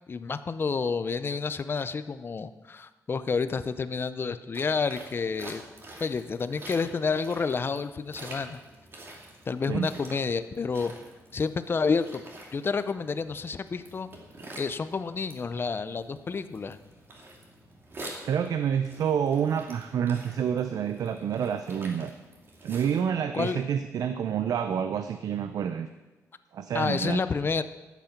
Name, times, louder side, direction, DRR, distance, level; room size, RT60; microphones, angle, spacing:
voice 1, 0.1-5.6 6.0-8.6 9.5-10.9 11.3-12.2 12.5-14.1 14.6-16.8 23.3-23.6 26.7-27.6, left 5 dB, 40° left, 12 dB, 0.6 m, -29 dB
sound 1, 4.5-23.0, right 1 dB, 40° right, 2.6 m, -47 dB
voice 2, 18.2-22.1 22.6-25.9 26.5-27.2, right 8 dB, 80° right, 9 dB, 0.6 m, -28 dB
14.0 x 8.3 x 5.9 m, 1.2 s
wide cardioid pair, 120°, 6 cm